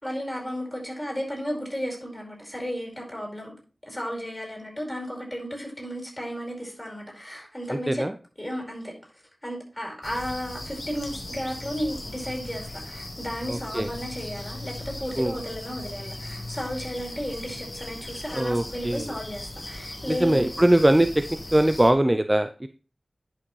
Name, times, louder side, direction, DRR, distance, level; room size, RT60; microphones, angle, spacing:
voice 1, 0.0-3.6 3.9-8.1 8.4-8.9 9.4-20.4, equal, 15° left, 0 dB, 4.8 m, -33 dB
voice 2, 7.7-8.1 13.5-13.9 15.2-15.3 18.3-19.1 20.1-21.2 21.5-22.7, right 1 dB, 20° right, 9 dB, 0.5 m, -21 dB
sound 1, 10.0-21.9, left 1 dB, 35° left, 1.6 m, -38 dB
10.5 x 6.1 x 3.2 m, 0.36 s
wide cardioid pair, 60°, 0 cm